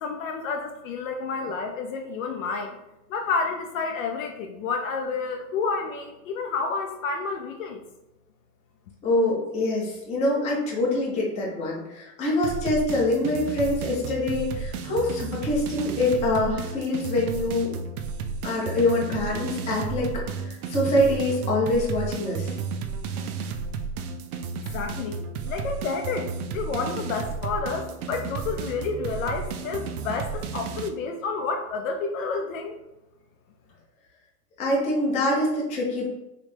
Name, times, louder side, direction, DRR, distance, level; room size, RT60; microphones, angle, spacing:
voice 1, 0.0-2.8 3.1-7.8 24.7-32.8, left 4 dB, 60° left, 4 dB, 0.5 m, -30 dB
voice 2, 9.0-17.7 18.4-22.6 34.6-36.1, left 1 dB, 15° left, -3 dB, 0.6 m, -25 dB
sound 1, 12.4-30.9, right 5 dB, 65° right, 0.6 m, -33 dB
3.2 x 2.6 x 3.2 m, 0.95 s
hypercardioid pair, 135°, 47 cm